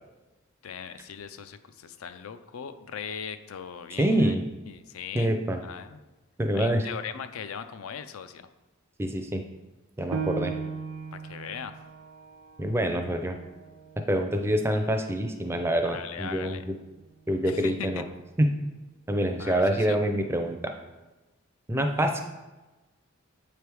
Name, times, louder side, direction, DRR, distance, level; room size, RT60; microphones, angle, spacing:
voice 1, 0.6-4.3 4.7-6.0 6.5-8.5 11.1-11.8 15.9-16.7 17.4-17.9 19.1-20.0, left 7 dB, 75° left, 11 dB, 0.4 m, -39 dB
voice 2, 4.0-4.4 5.1-5.6 6.4-6.9 9.0-9.4 10.0-10.5 12.6-13.4 14.1-16.7 17.3-18.0 18.4-18.5 19.1-20.7 21.7-22.2, right 1 dB, 10° right, 5 dB, 0.4 m, -26 dB
Piano, 10.1-15.3 15.8-15.9 16.5-17.0, right 5 dB, 70° right, 0.5 m, -38 dB
7.5 x 3.4 x 4.6 m, 1.1 s
head